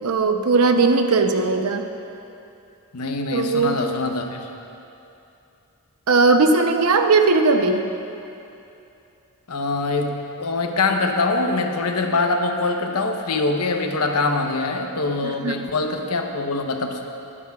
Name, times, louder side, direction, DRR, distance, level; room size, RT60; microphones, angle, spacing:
voice 1, 0.0-1.9 3.3-3.7 6.1-7.8 15.2-15.5, right 3 dB, 80° right, 6 dB, 0.7 m, -18 dB
voice 2, 2.9-4.4 9.5-17.0, left 3 dB, 90° left, 4 dB, 0.9 m, -23 dB
22.0 x 9.9 x 2.4 m, 2.7 s
head